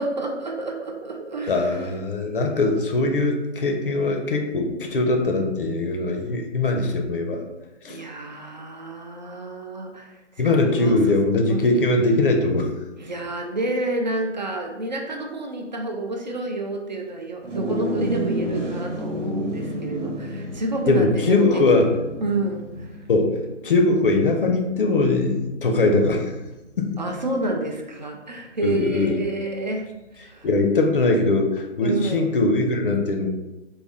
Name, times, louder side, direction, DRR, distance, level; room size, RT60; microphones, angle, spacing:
voice 1, 0.0-1.9 2.2-2.4 7.9-11.0 11.5-11.7 13.0-21.7 22.2-23.0 27.0-30.5 31.8-32.3, right 2 dB, 40° right, 2 dB, 0.4 m, -29 dB
voice 2, 1.5-7.4 7.8-8.0 10.4-12.7 20.9-21.9 23.1-26.3 26.8-27.0 28.6-29.2 30.4-33.3, left 2 dB, 45° left, 3 dB, 0.6 m, -21 dB
sound 1, 17.4-27.0, right 1 dB, 80° right, 1.1 m, -32 dB
4.2 x 2.2 x 3.4 m, 1.0 s
figure-of-eight pair, 150°, 37 cm